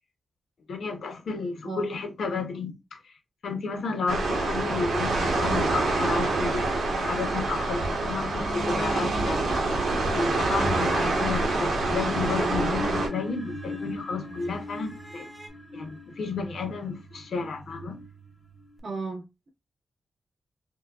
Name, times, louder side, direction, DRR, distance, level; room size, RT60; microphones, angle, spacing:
voice 1, 0.7-3.1 3.4-9.7 10.1-15.3 15.7-18.0, left 4 dB, 60° left, 0.7 m, -32 dB
sound 1, 4.1-13.1, right 2 dB, 80° right, 1.0 m, -26 dB
sound 2, 7.7-10.2 10.5-15.5, right 1 dB, 20° right, 0.7 m, -42 dB
sound 3, 11.9-18.8, left 1 dB, 20° left, 0.6 m, -40 dB
voice 2, 18.8-19.5, right 3 dB, 45° right, 1.6 m, -35 dB
4.4 x 2.2 x 2.3 m
wide cardioid pair, 175°, 0 cm